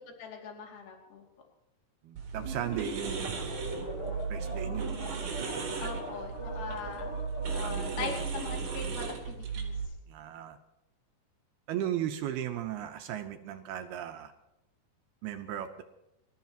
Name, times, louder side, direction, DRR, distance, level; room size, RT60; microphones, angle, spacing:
voice 1, 0.2-1.2 5.8-7.1 7.5-9.7, left 5 dB, 60° left, 1 dB, 4.3 m, -41 dB
voice 2, 2.0-3.4 4.3-4.8 5.8-5.9 7.6-8.1 10.1-10.6 11.7-14.3 15.2-15.8, right 11 dB, 80° right, 6 dB, 2.5 m, -36 dB
sound 1, 2.1-9.9, right 6 dB, 45° right, 3.7 m, -36 dB
sound 2, 2.3-8.8, equal, 15° left, 2.6 m, -41 dB
26.0 x 14.0 x 3.0 m, 0.90 s
omnidirectional pair, 5.1 m